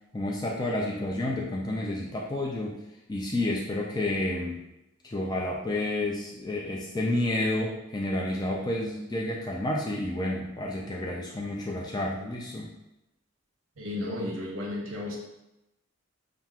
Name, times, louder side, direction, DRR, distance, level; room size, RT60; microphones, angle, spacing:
voice 1, 0.1-2.8 3.1-4.6 5.0-12.7, left 1 dB, 20° left, -2 dB, 0.4 m, -30 dB
voice 2, 13.8-15.2, left 1 dB, 65° right, -3 dB, 1.0 m, -33 dB
7.1 x 2.4 x 2.3 m, 0.91 s
head